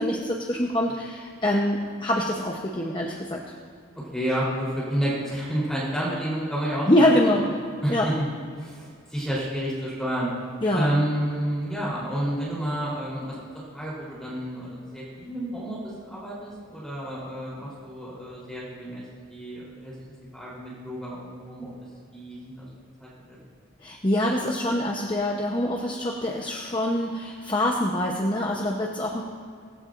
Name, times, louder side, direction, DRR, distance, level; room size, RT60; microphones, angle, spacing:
voice 1, 0.0-3.4 6.9-7.5 7.9-8.1 10.6-11.0 23.8-29.2, left 1 dB, 25° left, -1 dB, 0.9 m, -25 dB
voice 2, 4.1-7.5 7.8-8.1 8.6-10.3 10.7-13.4 13.7-19.0 19.3-19.9 20.3-21.7 22.1-22.7 23.0-23.1, right 1 dB, 5° left, -8 dB, 3.7 m, -30 dB
18.5 x 15.5 x 2.6 m, 2.2 s
head